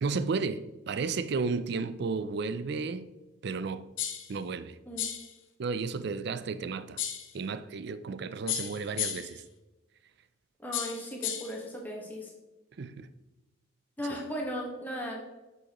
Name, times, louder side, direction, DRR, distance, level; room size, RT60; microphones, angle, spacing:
voice 1, 0.0-3.1 3.4-3.8 4.3-4.8 5.6-7.0 7.3-9.4 12.8-13.1 14.1-14.2, right 4 dB, 55° right, 0.4 m, -33 dB
sound 1, 4.0-4.3 5.0-5.3 7.0-7.3 8.5-9.4 10.7-11.6, left 10 dB, 70° left, 0.8 m, -34 dB
voice 2, 10.6-12.3 14.0-15.2, equal, 10° left, 1.3 m, -36 dB
7.5 x 6.4 x 3.0 m
head